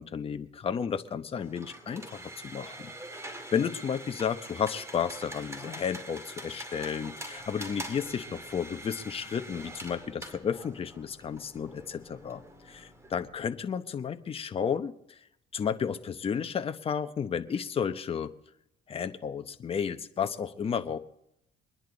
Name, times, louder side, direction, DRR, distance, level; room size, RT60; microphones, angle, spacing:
voice 1, 0.0-15.2 15.5-18.3 18.9-21.0, left 7 dB, 35° left, 8 dB, 0.9 m, -33 dB
sound 1, 1.3-13.1, right 1 dB, 15° right, 2.3 m, -44 dB
sound 2, 7.3-13.6, left 3 dB, 10° left, 5.3 m, -61 dB
23.5 x 10.5 x 3.9 m, 0.76 s
cardioid pair, 110°, 17 cm